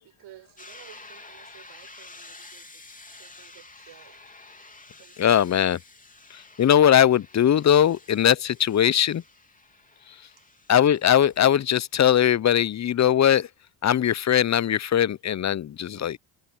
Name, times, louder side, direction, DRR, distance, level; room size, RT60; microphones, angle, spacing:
voice 1, 0.0-2.9 3.2-4.4 5.0-5.6 10.4-10.5 16.0-16.1, right 13 dB, 60° right, 6.5 m, -53 dB
sound 1, 0.6-12.2, left 3 dB, 15° left, 3.4 m, -50 dB
voice 2, 5.2-5.8 6.6-9.2 10.7-13.5 13.8-16.2, left 10 dB, 35° left, 0.9 m, -20 dB
hypercardioid pair, 60°, 48 cm